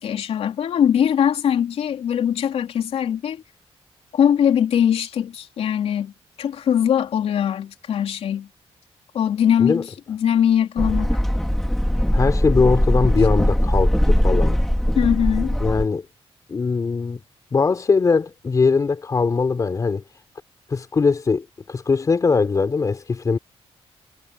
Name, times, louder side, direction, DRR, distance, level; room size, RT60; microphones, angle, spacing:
voice 1, 0.0-3.4 4.1-6.1 6.4-8.5 9.1-11.2 15.0-15.6, left 9 dB, 75° left, 3.7 m, -21 dB
sound 1, 10.8-15.9, equal, 5° left, 3.6 m, -20 dB
voice 2, 12.1-14.6 15.6-16.1 16.5-17.2 17.5-20.0 20.7-23.4, left 4 dB, 35° left, 3.7 m, -21 dB
wide cardioid pair, 145°, 10 cm